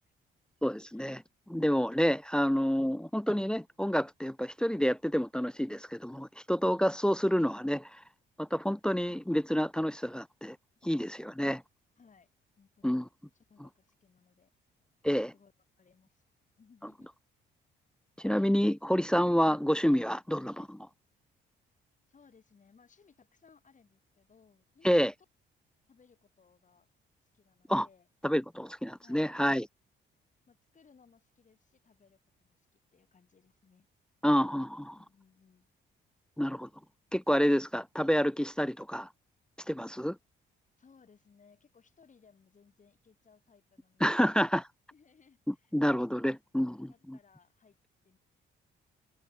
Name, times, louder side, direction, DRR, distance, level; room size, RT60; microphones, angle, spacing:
voice 1, 0.6-1.2 1.5-7.9 8.4-10.6 10.9-11.6 12.8-13.1 15.0-15.3 18.2-20.8 24.8-25.1 27.7-27.9 28.2-29.7 34.2-35.0 36.4-36.7 37.1-39.1 39.7-40.2 44.0-44.7 45.5-47.2, equal, 5° left, 0.4 m, -28 dB
voice 2, 10.8-11.3 12.0-12.3 12.6-13.0 13.5-14.5 15.3-15.5 15.8-16.2 16.6-17.1 20.6-20.7 22.1-25.1 25.9-26.9 27.3-28.1 29.0-29.4 30.5-33.9 34.9-35.7 40.8-44.4 44.9-45.7 46.9-47.8 48.0-48.2, left 5 dB, 40° left, 7.8 m, -63 dB
cardioid pair, 90°, 20 cm